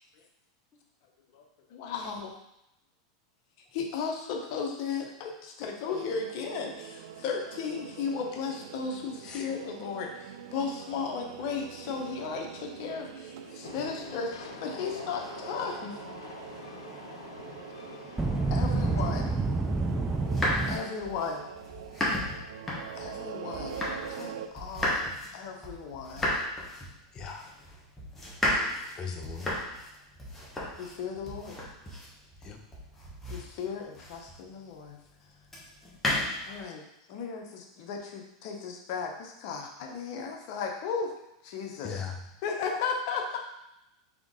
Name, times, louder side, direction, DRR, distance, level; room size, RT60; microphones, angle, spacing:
voice 1, 1.7-2.3 3.7-16.0 18.5-19.3 20.7-21.4 22.9-26.4 30.8-31.6 33.3-35.0 36.5-36.8 37.1-41.1 41.4-42.0 42.4-43.4, left 5 dB, 55° left, 2 dB, 0.8 m, -35 dB
sound 1, 5.9-24.5, right 8 dB, 75° right, 0.4 m, -44 dB
Train, 13.6-19.3, left 3 dB, 90° left, 0.6 m, -45 dB
voice 2, 18.2-20.8, right 3 dB, 10° right, 3 dB, 0.4 m, -28 dB
sound 2, 20.1-24.3 24.6-34.5 35.5-36.6, left 1 dB, 10° left, 1.1 m, -34 dB
voice 3, 27.1-27.5 28.9-29.6 32.4-32.6 41.8-42.2, left 6 dB, 30° left, 3 dB, 0.7 m, -38 dB
3.7 x 3.6 x 3.7 m, 0.85 s
supercardioid pair, 125°, 2 cm